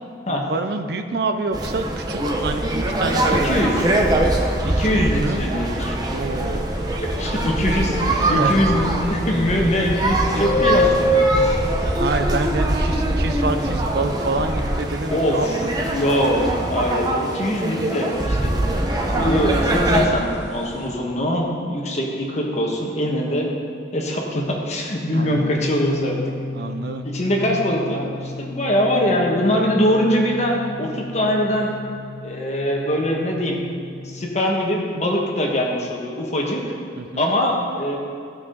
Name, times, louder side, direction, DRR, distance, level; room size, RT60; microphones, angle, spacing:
voice 1, 0.3-3.5 4.6-5.4 6.1-6.7 8.2-8.6 10.3-10.5 11.9-15.7 25.1-25.5 26.5-27.0 37.0-37.3, right 3 dB, 65° right, 8 dB, 0.6 m, -27 dB
sound 1, 1.5-20.1, right 1 dB, 25° right, 0.9 m, -23 dB
voice 2, 3.4-3.9 4.6-6.0 7.2-11.5 13.7-13.8 15.1-15.6 15.9-18.5 19.0-23.5 23.9-26.2 27.0-31.7 32.2-33.6 34.0-36.7 37.2-38.0, equal, 40° left, -1 dB, 1.4 m, -22 dB
sound 2, 6.6-20.9, left 1 dB, 65° left, 1.9 m, -27 dB
sound 3, 25.3-34.4, left 2 dB, 85° left, 0.6 m, -34 dB
15.5 x 6.0 x 4.0 m, 2.3 s
head